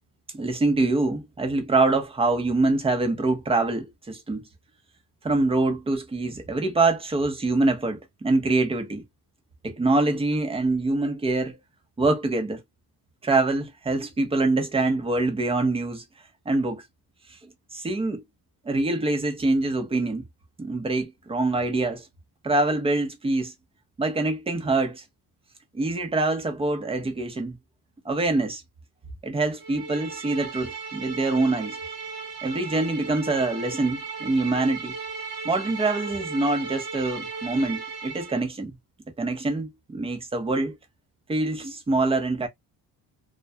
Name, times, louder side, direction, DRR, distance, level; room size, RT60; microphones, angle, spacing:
voice 1, 0.3-4.4 5.2-9.0 9.6-11.6 12.0-12.6 13.2-16.0 16.5-16.8 17.7-18.2 18.7-20.2 20.6-22.1 22.4-23.5 24.0-25.0 25.7-27.6 28.0-28.6 29.2-31.8 32.4-35.0 35.4-38.8 39.2-40.8 41.3-42.5, right 2 dB, 15° right, 0.6 m, -25 dB
sound 1, 29.6-38.4, right 5 dB, 65° right, 1.2 m, -36 dB
2.3 x 2.1 x 2.6 m
cardioid pair, 145°, 38 cm